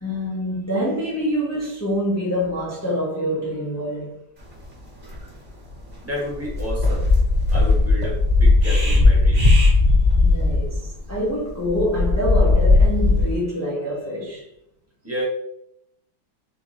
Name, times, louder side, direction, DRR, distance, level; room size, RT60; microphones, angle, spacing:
voice 1, 0.0-4.2 10.2-14.5, equal, 20° left, 0.5 m, -26 dB
sound 1, 4.6-4.7 5.0-5.2 5.7-5.9 6.3-13.4, left 3 dB, 30° right, 1.4 m, -17 dB
voice 2, 6.0-7.1 7.5-9.5 15.0-15.3, equal, 10° right, 1.1 m, -31 dB
4.7 x 3.6 x 3.0 m
omnidirectional pair, 2.2 m